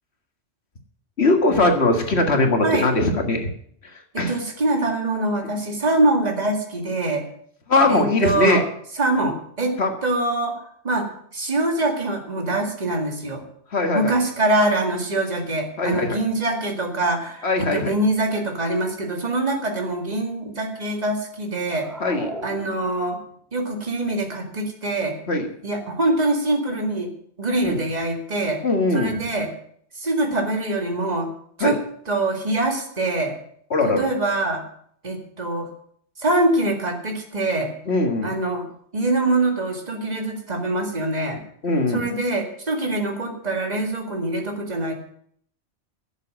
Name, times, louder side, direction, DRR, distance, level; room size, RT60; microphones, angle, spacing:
voice 1, 1.2-3.5 3.8-4.4 7.7-8.6 9.8-9.9 13.7-14.2 15.8-16.2 17.4-17.9 22.0-22.3 25.3-25.5 27.6-27.8 28.6-29.2 31.6-31.8 33.7-34.1 37.9-38.3 41.6-42.1, left 2 dB, 60° left, 5 dB, 2.0 m, -20 dB
voice 2, 4.1-7.2 7.9-8.6 9.0-9.8 10.0-13.4 13.9-21.9 22.4-23.2 23.5-25.2 25.6-27.1 27.4-28.6 28.9-29.5 30.0-31.3 31.6-31.8 32.1-33.4 33.8-34.6 35.0-35.7 36.2-37.7 38.2-38.7 38.9-41.4 41.9-44.9, right 2 dB, 35° right, 3 dB, 2.2 m, -24 dB
sound 1, 21.7-23.3, equal, ahead, 1.9 m, -36 dB
11.0 x 7.6 x 8.7 m, 0.64 s
omnidirectional pair, 1.2 m